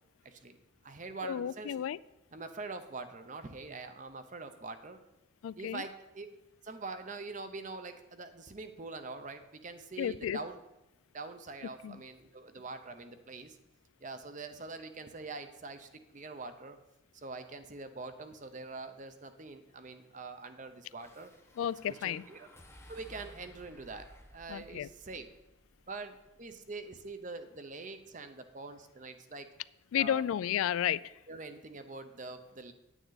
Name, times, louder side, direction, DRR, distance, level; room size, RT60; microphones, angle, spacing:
voice 1, 0.2-0.6 0.8-1.7 2.3-5.0 5.6-6.3 6.6-10.6 11.1-13.6 14.0-16.8 17.1-21.3 21.9-22.5 22.9-25.3 25.9-29.5 30.0-30.2 31.3-32.7, right 3 dB, 40° right, 9 dB, 0.7 m, -44 dB
voice 2, 1.2-2.0 5.4-5.8 10.0-10.4 11.8-12.0 21.6-22.2 24.5-24.9 29.9-31.2, left 10 dB, 90° left, 20 dB, 0.3 m, -32 dB
sound 1, 20.9-27.3, equal, 10° left, 0.9 m, -57 dB
9.2 x 9.1 x 4.0 m, 0.95 s
head